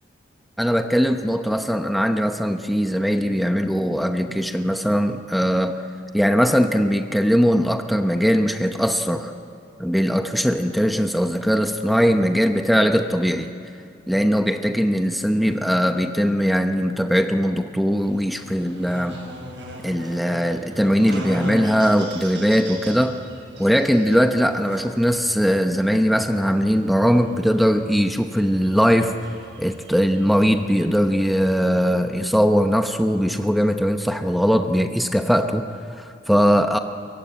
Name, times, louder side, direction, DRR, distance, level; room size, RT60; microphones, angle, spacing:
voice 1, 0.6-5.8 6.1-9.3 9.8-13.5 14.1-19.2 19.8-23.2 23.6-29.1 29.6-36.8, equal, ahead, 6 dB, 0.9 m, -20 dB
Buzz, 17.9-31.9, equal, 65° right, 7.8 m, -39 dB
24.0 x 22.5 x 9.4 m, 2.5 s
head